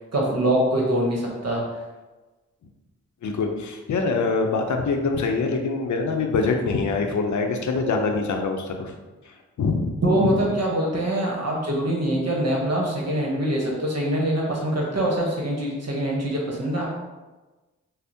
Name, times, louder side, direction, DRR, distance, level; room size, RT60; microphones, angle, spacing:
voice 1, 0.1-1.6 10.0-16.9, right 1 dB, 55° right, -2 dB, 1.0 m, -24 dB
voice 2, 3.2-8.9 9.3-9.9 10.2-10.4, left 4 dB, 70° left, 4 dB, 0.6 m, -24 dB
5.5 x 2.0 x 2.7 m, 1.2 s
cardioid pair, 45°, 30 cm